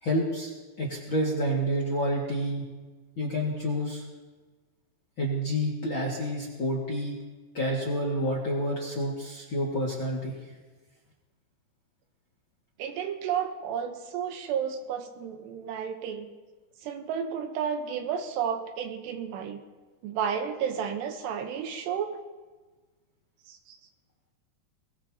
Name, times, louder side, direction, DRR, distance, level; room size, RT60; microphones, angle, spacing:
voice 1, 0.0-0.5 0.8-2.7 3.2-4.0 5.2-7.2 7.5-10.4, equal, 40° left, -3 dB, 1.8 m, -29 dB
voice 2, 12.8-16.3 16.8-19.6 20.0-22.2 23.5-23.8, right 8 dB, 75° right, 6 dB, 3.1 m, -32 dB
22.5 x 20.0 x 2.9 m, 1.3 s
omnidirectional pair, 5.1 m